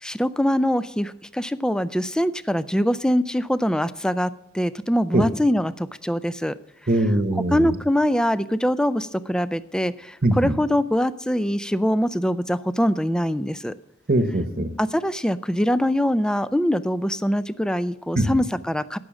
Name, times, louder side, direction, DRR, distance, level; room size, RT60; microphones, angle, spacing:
voice 1, 0.0-6.5 7.3-13.7 14.8-19.0, equal, 5° left, 15 dB, 0.4 m, -23 dB
voice 2, 6.9-7.7 10.2-10.5 14.1-14.7 18.2-18.4, right 1 dB, 45° right, 9 dB, 1.0 m, -21 dB
14.0 x 6.3 x 7.2 m, 0.84 s
head